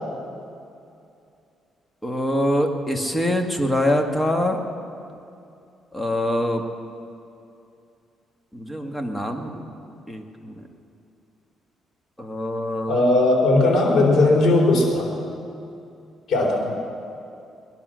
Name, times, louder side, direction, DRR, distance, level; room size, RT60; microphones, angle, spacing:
voice 1, 2.0-4.6 5.9-6.6 8.5-9.6 10.1-10.6 12.2-13.0, left 1 dB, 10° left, 3 dB, 1.9 m, -24 dB
voice 2, 12.9-15.1 16.3-16.8, left 2 dB, 65° left, -1 dB, 3.9 m, -18 dB
21.0 x 11.0 x 6.4 m, 2.6 s
cardioid pair, 90°, 0 cm